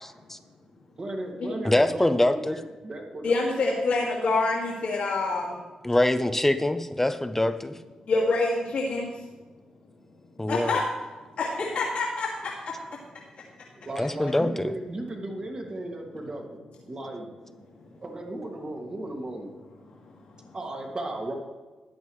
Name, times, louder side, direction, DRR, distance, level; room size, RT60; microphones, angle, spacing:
voice 1, 1.0-3.4 13.8-16.6 16.9-17.3 18.0-19.5 20.5-21.3, right 1 dB, 40° right, 1 dB, 2.3 m, -35 dB
voice 2, 1.6-2.6 5.8-7.8 10.4-10.7 14.0-14.5, left 1 dB, 15° left, 10 dB, 0.8 m, -24 dB
voice 3, 3.2-5.6 8.1-9.2 10.5-10.8 11.4-12.5 12.9-13.0 20.4-20.6, left 3 dB, 75° left, -5 dB, 2.3 m, -26 dB
13.5 x 9.3 x 3.2 m, 1.3 s
cardioid pair, 65°, 2 cm